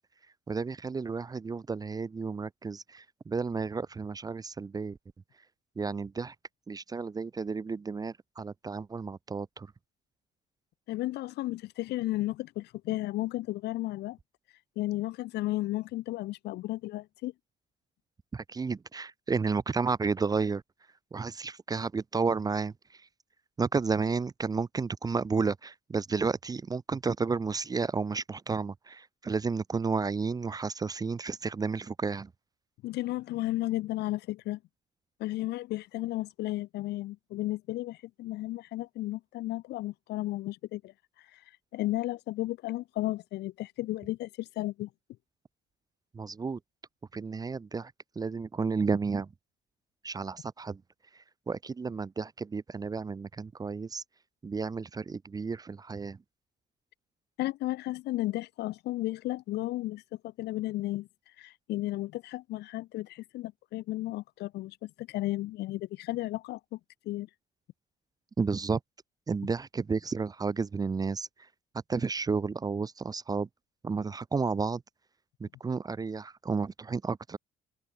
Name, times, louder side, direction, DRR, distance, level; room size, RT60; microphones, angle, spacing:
voice 1, 0.5-5.0 5.8-6.3 6.7-9.7 18.3-20.6 21.1-23.0 23.6-32.3 46.1-46.6 47.1-49.3 50.0-50.8 51.5-54.0 54.4-56.2 68.4-68.8 69.3-71.3 71.9-73.5 73.8-74.8 75.4-77.4, right 4 dB, 20° right, 0.7 m, -32 dB
voice 2, 10.9-14.2 14.8-17.3 32.8-34.6 35.2-40.9 41.3-41.4 41.7-44.9 57.4-61.1 61.4-66.8 67.0-67.3, left 16 dB, 80° left, 4.1 m, -34 dB
open air
cardioid pair, 110°, 17 cm